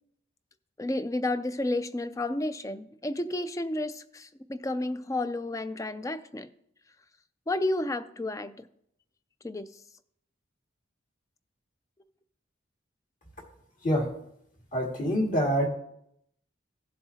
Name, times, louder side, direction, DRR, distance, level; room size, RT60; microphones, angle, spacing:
voice 1, 0.8-6.5 7.5-8.6 9.4-9.7, left 2 dB, 15° left, 13 dB, 0.4 m, -31 dB
voice 2, 14.7-15.7, equal, 40° left, 0 dB, 2.0 m, -26 dB
16.0 x 7.5 x 2.8 m, 0.74 s
head